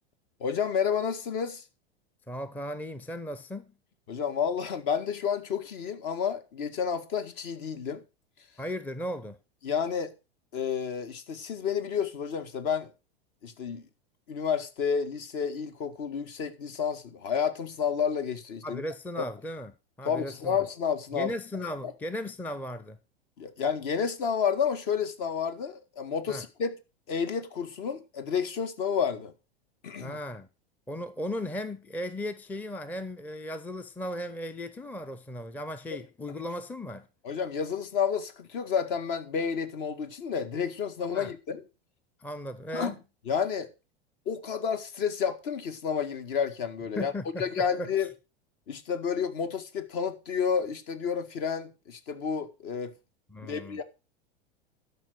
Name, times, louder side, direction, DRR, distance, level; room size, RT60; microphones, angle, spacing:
voice 1, 0.4-1.6 4.1-8.0 9.6-10.1 10.5-12.9 13.4-13.8 14.3-18.8 20.1-21.3 21.8-21.9 23.4-26.8 27.1-29.3 29.8-30.2 37.2-41.6 42.7-43.0 43.3-43.7 44.3-47.1 47.4-48.1 48.7-52.9 53.4-53.8, left 7 dB, 55° left, 1.9 m, -30 dB
voice 2, 2.3-3.7 8.6-9.4 18.6-20.6 21.1-23.0 26.3-26.5 30.0-30.5 30.9-37.1 41.1-41.3 42.2-43.0 47.0-48.1 53.3-53.8, left 1 dB, 5° left, 0.6 m, -36 dB
12.5 x 5.7 x 6.3 m
hypercardioid pair, 95°, 32 cm